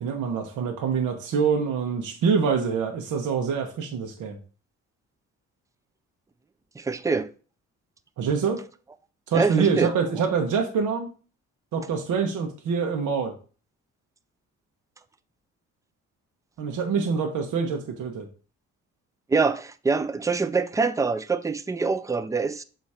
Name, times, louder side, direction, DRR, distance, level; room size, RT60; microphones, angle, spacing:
voice 1, 0.0-4.4 8.2-8.6 9.3-11.1 11.7-13.3 16.6-18.3, right 6 dB, 75° right, 1.3 m, -25 dB
voice 2, 6.8-7.3 9.3-9.9 19.3-22.6, right 4 dB, 10° right, 0.5 m, -25 dB
7.1 x 3.1 x 5.0 m
cardioid pair, 90°, 30 cm